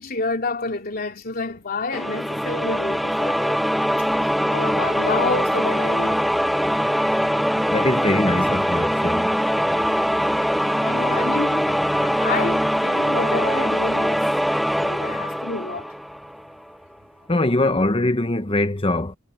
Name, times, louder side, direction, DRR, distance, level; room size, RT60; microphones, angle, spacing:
voice 1, 0.0-3.6 4.5-6.2 10.2-10.3 10.6-11.7 12.0-14.2 14.8-15.9, left 3 dB, 50° left, 3.5 m, -29 dB
sound 1, 1.9-16.5, equal, ahead, 0.5 m, -22 dB
voice 2, 7.7-9.3 17.3-19.1, left 2 dB, 25° left, 1.2 m, -22 dB
head